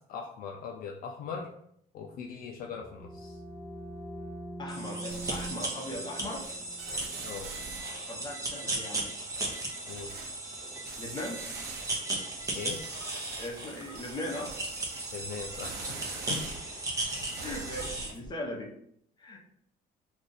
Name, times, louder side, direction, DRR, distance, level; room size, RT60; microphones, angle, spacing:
voice 1, 0.1-1.5 1.9-3.4 7.2-7.5 9.9-10.1 12.5-12.8 15.1-16.4, left 6 dB, 60° left, 2 dB, 0.4 m, -40 dB
sound 1, 2.4-8.0, right 1 dB, 5° left, 1.1 m, -44 dB
voice 2, 4.6-6.5 8.1-9.0 11.0-11.4 13.4-14.6 16.3-16.4 17.4-18.7 19.2-19.4, left 1 dB, 25° left, 0 dB, 0.9 m, -38 dB
sound 2, 4.7-18.1, right 2 dB, 20° right, 0.8 m, -37 dB
sound 3, 5.1-5.9 6.2-8.1 9.3-10.3 10.9-12.0 12.4-16.6 17.0-18.3, right 4 dB, 75° right, 0.7 m, -44 dB
2.6 x 2.4 x 3.9 m, 0.70 s
cardioid pair, 110°, 17 cm